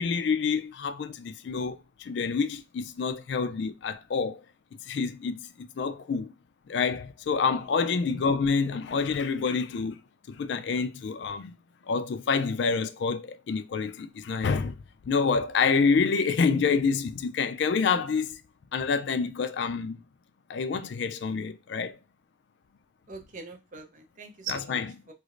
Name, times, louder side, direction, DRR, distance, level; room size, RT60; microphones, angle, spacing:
voice 1, 0.0-4.4 4.8-6.3 6.7-10.0 10.3-11.6 11.9-14.8 15.0-18.4 18.7-20.0 20.5-22.0 24.5-24.9, left 5 dB, 65° left, 0.4 m, -27 dB
voice 2, 23.1-25.1, right 4 dB, 40° right, 0.6 m, -41 dB
4.6 x 2.0 x 2.5 m
head